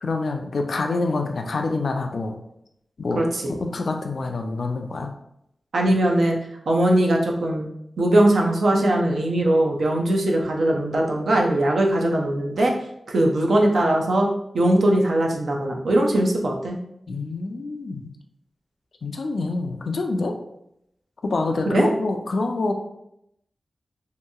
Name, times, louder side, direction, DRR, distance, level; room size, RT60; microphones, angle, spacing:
voice 1, 0.0-2.4 3.0-3.2 3.5-5.1 17.1-18.1 19.0-20.3 21.2-22.7, left 3 dB, 60° left, 4 dB, 0.3 m, -26 dB
voice 2, 3.1-3.5 5.7-6.4 6.7-7.7 8.0-12.7 13.1-14.3 14.5-16.8 21.7-21.9, right 1 dB, 80° right, 0 dB, 0.5 m, -20 dB
2.8 x 2.6 x 2.3 m, 0.78 s
wide cardioid pair, 140°, 0 cm